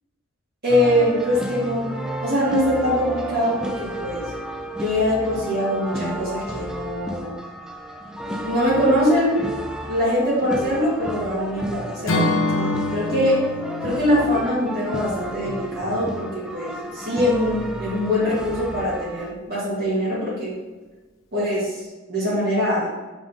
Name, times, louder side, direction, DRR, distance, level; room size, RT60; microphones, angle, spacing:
voice 1, 0.6-1.9 2.2-4.2 4.7-7.3 8.4-9.4 9.9-12.3 12.5-13.4 13.8-20.5 21.3-21.8 22.1-22.9, left 1 dB, 50° right, -7 dB, 1.8 m, -22 dB
sound 1, 0.7-19.3, right 1 dB, 5° right, 0.4 m, -32 dB
Acoustic guitar / Strum, 12.1-16.2, left 2 dB, 75° left, 1.0 m, -27 dB
5.5 x 5.0 x 3.6 m, 1.3 s
head